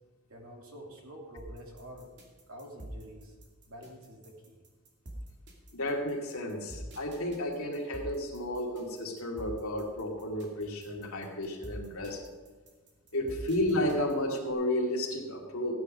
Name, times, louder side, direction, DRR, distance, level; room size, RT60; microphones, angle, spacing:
voice 1, 0.3-2.1 2.5-3.3 3.7-4.6, equal, 80° right, 0 dB, 2.8 m, -47 dB
sound 1, 1.4-14.5, right 1 dB, 50° right, 2.6 m, -46 dB
voice 2, 5.7-12.2 13.1-15.7, left 1 dB, 80° left, 0 dB, 2.4 m, -32 dB
15.5 x 9.6 x 5.1 m, 1.4 s
head